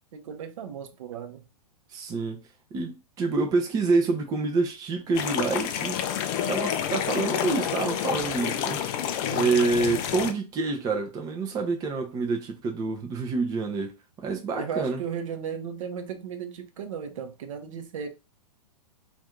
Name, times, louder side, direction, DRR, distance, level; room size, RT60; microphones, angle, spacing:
voice 1, 0.1-1.4 14.6-18.1, right 7 dB, 55° right, 0.7 m, -35 dB
voice 2, 1.9-2.4 2.7-6.0 6.5-8.8 9.3-15.0, right 4 dB, 20° right, 0.5 m, -27 dB
sound 1, 5.1-10.3, left 9 dB, 30° left, 0.4 m, -29 dB
2.6 x 2.5 x 3.5 m
figure-of-eight pair, 105°, 20 cm